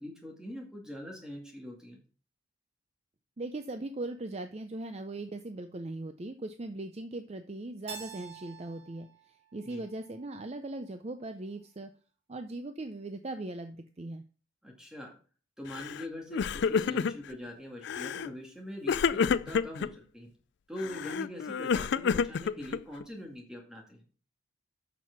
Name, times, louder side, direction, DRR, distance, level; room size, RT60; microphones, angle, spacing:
voice 1, 0.0-2.0 9.6-9.8 14.6-15.1 15.6-20.3 20.7-24.0, left 1 dB, 5° right, 0 dB, 2.1 m, -43 dB
voice 2, 3.4-11.9 12.3-14.2, right 2 dB, 30° right, 8 dB, 0.5 m, -39 dB
Keyboard (musical), 7.9-10.7, right 7 dB, 55° right, 1.2 m, -48 dB
Crying sobbing, 15.7-16.0 16.3-17.3 17.8-18.3 18.9-19.9 20.8-23.0, left 6 dB, 55° left, 0.3 m, -29 dB
7.3 x 6.1 x 6.0 m, 0.39 s
head